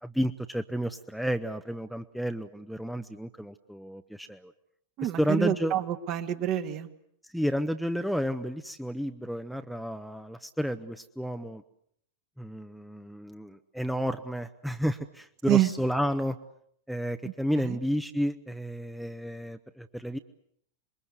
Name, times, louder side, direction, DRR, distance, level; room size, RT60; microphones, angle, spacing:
voice 1, 0.0-4.5 5.0-5.7 7.2-11.6 12.4-16.4 16.9-20.2, equal, ahead, 8 dB, 1.0 m, -31 dB
voice 2, 5.0-6.9 15.5-15.7 17.2-17.8, right 12 dB, 40° right, 8 dB, 1.9 m, -28 dB
27.0 x 22.0 x 8.1 m, 0.67 s
figure-of-eight pair, 90°, 0 cm